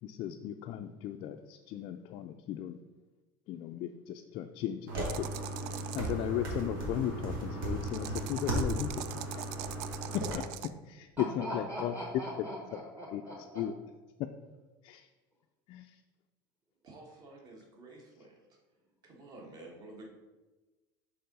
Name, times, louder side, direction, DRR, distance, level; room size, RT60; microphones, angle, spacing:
voice 1, 0.0-2.8 3.5-5.3 5.9-9.5 10.3-10.4 10.8-11.9 13.1-13.7 14.2-14.3 14.8-15.1 15.7-16.0, left 11 dB, 45° left, 4 dB, 0.4 m, -36 dB
sound 1, 4.9-10.3, right 1 dB, 85° right, 1.8 m, -36 dB
sound 2, 5.0-6.1 7.8-10.7, right 13 dB, 60° right, 0.4 m, -42 dB
voice 2, 11.4-13.6, equal, 15° right, -2 dB, 1.1 m, -41 dB
voice 3, 16.8-18.3 19.0-20.1, right 2 dB, 35° right, 0 dB, 1.5 m, -50 dB
6.7 x 3.6 x 5.4 m, 1.2 s
supercardioid pair, 140°, 11 cm